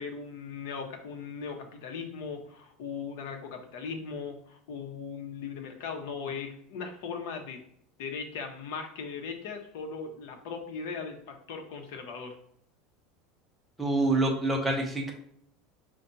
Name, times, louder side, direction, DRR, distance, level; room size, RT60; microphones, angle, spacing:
voice 1, 0.0-7.6 8.0-12.4, left 5 dB, 65° left, 4 dB, 0.9 m, -38 dB
voice 2, 13.8-15.1, right 2 dB, 5° right, -1 dB, 0.7 m, -26 dB
5.0 x 2.3 x 4.0 m, 0.70 s
supercardioid pair, 175°, 0 cm